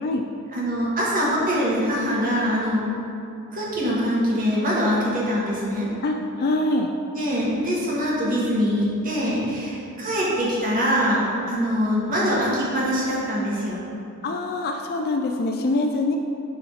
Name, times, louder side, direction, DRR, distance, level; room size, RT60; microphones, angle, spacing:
voice 1, 0.5-2.8 3.5-5.9 7.1-13.8, equal, 40° right, -6 dB, 1.8 m, -23 dB
voice 2, 6.0-6.9 14.2-16.2, left 2 dB, 45° left, 3 dB, 0.4 m, -24 dB
11.0 x 4.2 x 4.0 m, 2.6 s
head